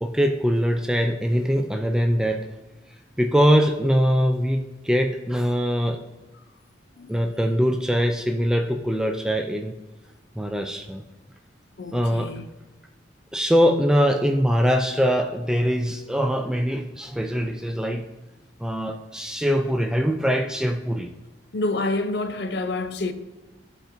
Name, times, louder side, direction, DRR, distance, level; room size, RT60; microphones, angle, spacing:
voice 1, 0.0-2.5 3.2-6.0 7.1-9.7 10.4-11.0 11.9-12.3 13.3-18.1 18.6-21.1, equal, 5° right, 0.3 m, -22 dB
voice 2, 11.8-12.5 21.5-23.1, left 2 dB, 60° left, 0.5 m, -27 dB
12.5 x 4.3 x 2.6 m
head